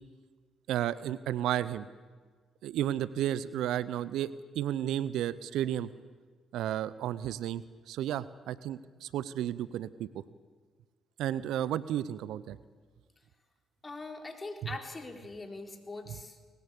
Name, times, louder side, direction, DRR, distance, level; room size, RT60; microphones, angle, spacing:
voice 1, 0.7-1.9 2.6-4.3 4.5-5.9 6.5-10.1 11.2-12.6, right 11 dB, 70° right, 18 dB, 0.7 m, -32 dB
voice 2, 13.8-16.4, left 3 dB, 30° left, 5 dB, 3.9 m, -42 dB
21.5 x 19.0 x 8.5 m, 1.5 s
hypercardioid pair, 45°, 0 cm